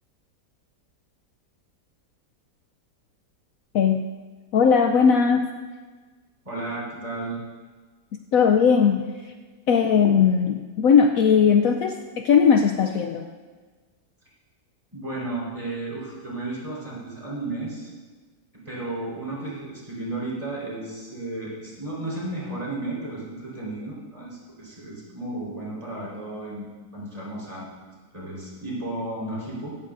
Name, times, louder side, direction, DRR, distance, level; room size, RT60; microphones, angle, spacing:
voice 1, 3.7-4.1 4.5-5.5 8.3-9.0 9.7-13.3, left 6 dB, 65° left, 5 dB, 1.0 m, -18 dB
voice 2, 6.4-7.4 14.9-17.9 18.5-26.7 26.9-27.7 28.1-29.7, right 2 dB, 20° right, -5 dB, 4.5 m, -33 dB
16.5 x 14.5 x 2.6 m, 1.4 s
omnidirectional pair, 1.7 m